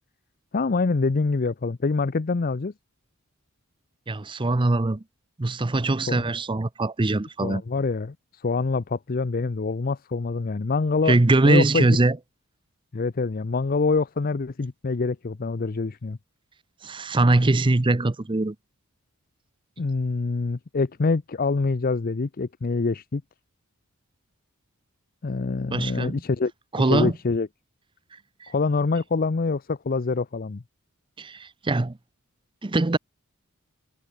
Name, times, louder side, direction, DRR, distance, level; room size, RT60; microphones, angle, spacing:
voice 1, 0.5-2.7 6.1-6.2 7.4-11.2 11.4-11.9 12.9-16.2 19.8-23.2 25.2-26.5 26.9-27.5 28.5-30.6, left 4 dB, 40° left, 0.5 m, -25 dB
voice 2, 4.1-5.0 5.4-7.6 11.1-12.2 16.8-18.5 25.7-26.2 26.7-27.1 28.4-28.5 31.2-32.0 32.6-33.0, right 2 dB, 20° right, 0.6 m, -22 dB
head